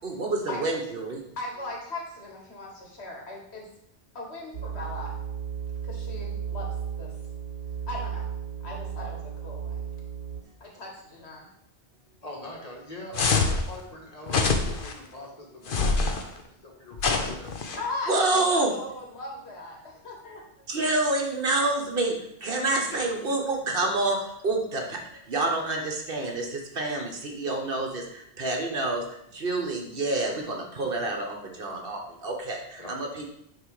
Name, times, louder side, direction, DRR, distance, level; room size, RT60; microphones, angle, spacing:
voice 1, 0.0-1.2 18.1-18.7 20.7-22.2 22.4-25.0 25.3-33.3, right 2 dB, 55° right, 2 dB, 1.3 m, -28 dB
voice 2, 1.4-3.6 4.2-5.1 5.9-7.1 7.9-8.2 8.6-9.9 10.6-11.5 17.7-20.4, left 2 dB, 70° left, -2 dB, 1.9 m, -38 dB
sound 1, 4.5-10.4, right 7 dB, 85° right, 1.0 m, -34 dB
voice 3, 12.2-17.6 22.8-23.2 32.8-32.9, left 1 dB, 35° left, -1 dB, 1.7 m, -43 dB
sound 2, 13.1-13.6 14.3-14.9 15.7-16.2 17.0-17.8, left 4 dB, 55° left, 0.9 m, -25 dB
9.3 x 3.2 x 4.9 m, 0.75 s
omnidirectional pair, 1.1 m